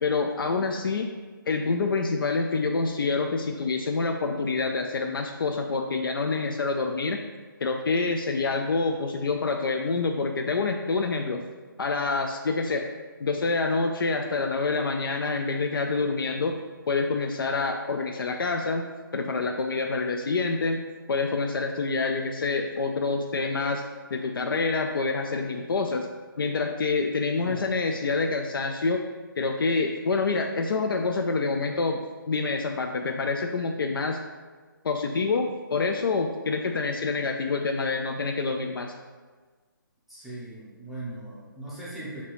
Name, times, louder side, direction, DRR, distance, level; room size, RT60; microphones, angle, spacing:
voice 1, 0.0-1.1 1.5-7.2 7.6-11.4 11.8-12.9 13.2-16.6 16.9-20.8 21.1-23.8 24.1-26.1 26.4-29.0 29.4-34.2 34.8-38.9, left 4 dB, 70° left, 4 dB, 0.4 m, -27 dB
voice 2, 40.1-42.2, right 2 dB, ahead, -10 dB, 0.5 m, -39 dB
5.8 x 2.8 x 3.0 m, 1.4 s
hypercardioid pair, 155°, 12 cm